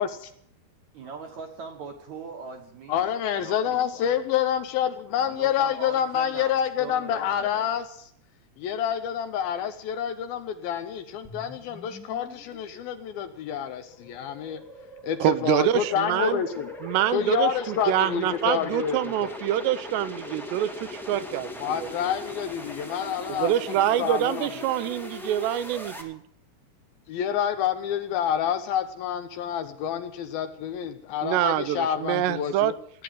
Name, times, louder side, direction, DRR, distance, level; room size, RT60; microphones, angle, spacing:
voice 1, 0.9-3.1 3.4-4.2 5.2-6.5 6.8-7.8, right 5 dB, 60° right, 5 dB, 2.0 m, -41 dB
voice 2, 2.9-8.1 8.6-14.6 15.0-16.7 17.1-19.4 21.6-24.5 27.1-32.7, left 9 dB, 75° left, 9 dB, 2.5 m, -28 dB
sound 1, 11.2-26.0, left 1 dB, ahead, 0.7 m, -40 dB
voice 3, 15.2-16.4 16.8-17.5 17.9-21.9 23.4-26.2 31.2-32.7, right 12 dB, 85° right, 14 dB, 2.9 m, -25 dB
16.0 x 9.8 x 7.7 m, 0.67 s
omnidirectional pair, 4.9 m